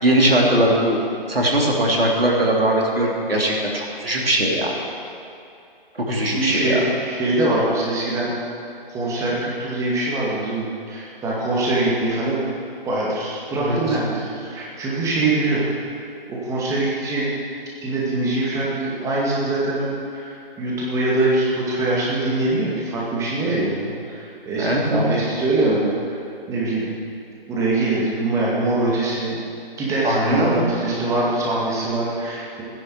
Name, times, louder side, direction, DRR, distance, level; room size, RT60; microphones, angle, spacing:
voice 1, 0.0-1.0 1.3-4.7 5.9-6.8 13.5-13.8 24.6-25.1 30.0-30.6, right 1 dB, 80° right, -2 dB, 3.2 m, -20 dB
voice 2, 6.3-8.3 8.9-12.4 12.8-15.6 16.3-17.3 17.8-25.9 26.5-26.9 27.5-29.4 29.8-32.6, right 2 dB, 10° right, -5 dB, 2.2 m, -23 dB
14.5 x 10.5 x 6.4 m, 2.6 s
figure-of-eight pair, 140°, 29 cm